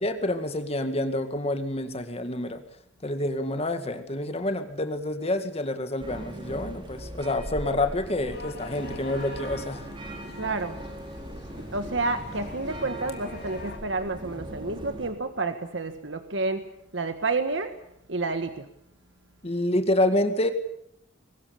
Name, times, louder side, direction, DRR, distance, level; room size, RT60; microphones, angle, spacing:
voice 1, 0.0-2.6 3.0-9.8 19.4-20.5, left 1 dB, 35° left, 8 dB, 2.0 m, -28 dB
sound 1, 6.0-15.1, right 1 dB, 25° right, 4.9 m, -39 dB
sound 2, 8.3-13.8, left 3 dB, 60° left, 2.8 m, -46 dB
voice 2, 10.4-10.8 11.6-16.6 16.9-17.7 18.1-18.7, right 3 dB, 75° right, 8 dB, 1.6 m, -30 dB
23.5 x 20.0 x 8.5 m, 0.76 s
head